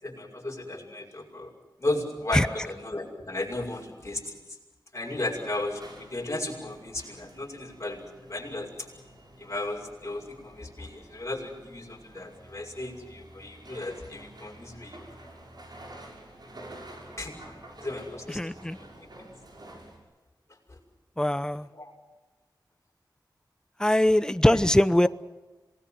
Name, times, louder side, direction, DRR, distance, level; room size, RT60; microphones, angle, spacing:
voice 1, 0.0-1.5 1.8-4.4 4.9-8.9 9.4-15.1 17.2-17.4 17.8-19.1 20.7-20.8 21.7-21.9 24.5-24.6, left 2 dB, 35° left, 7.3 m, -35 dB
sound 1, 5.0-20.0, right 1 dB, 60° right, 7.2 m, -49 dB
voice 2, 18.3-18.8 21.2-21.7 23.8-25.1, left 1 dB, 10° left, 0.8 m, -22 dB
27.0 x 19.5 x 7.9 m
wide cardioid pair, 60°, 8 cm